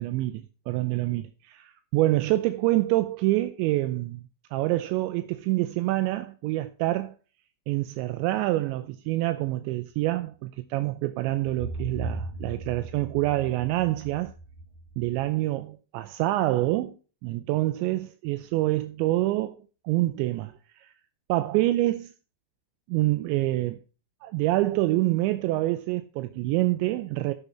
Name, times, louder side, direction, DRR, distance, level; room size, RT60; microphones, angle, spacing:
voice 1, 0.0-4.2 4.5-7.2 7.7-14.3 15.0-17.0 17.2-20.9 21.3-22.1 22.9-23.8 24.2-27.3, right 17 dB, 85° right, 2.9 m, -26 dB
sound 1, 11.4-15.3, right 2 dB, 50° right, 2.7 m, -38 dB
13.0 x 7.0 x 4.3 m
omnidirectional pair, 5.3 m